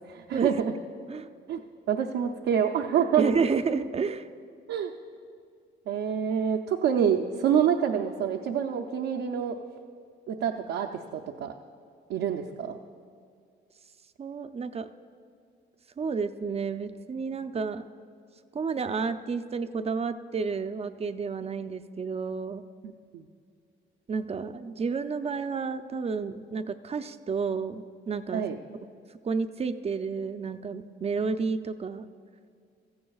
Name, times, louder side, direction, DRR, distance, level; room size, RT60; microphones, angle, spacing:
voice 1, 0.1-0.7 1.5-1.6 1.9-3.2 4.7-4.9 5.9-9.6 10.3-11.5 12.1-12.8 23.1-23.2 28.3-28.6, right 8 dB, 80° right, 2 dB, 0.6 m, -27 dB
voice 2, 3.2-4.2 14.2-14.9 16.0-17.9 18.5-22.6 24.1-28.5 29.2-32.1, right 5 dB, 30° right, 10 dB, 0.5 m, -30 dB
16.0 x 14.0 x 2.4 m, 2.2 s
cardioid pair, 90°, 20 cm